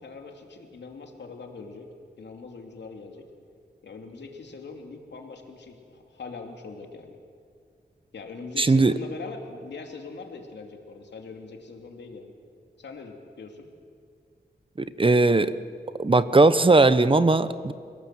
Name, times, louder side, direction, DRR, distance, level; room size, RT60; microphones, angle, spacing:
voice 1, 0.0-1.9 2.2-3.2 3.8-7.2 8.1-12.3 12.8-13.7, left 4 dB, 85° left, 3 dB, 2.7 m, -41 dB
voice 2, 8.6-8.9 14.8-15.5 16.0-17.7, right 3 dB, 30° right, 14 dB, 0.9 m, -19 dB
29.5 x 17.5 x 7.6 m, 2.2 s
wide cardioid pair, 70°, 18 cm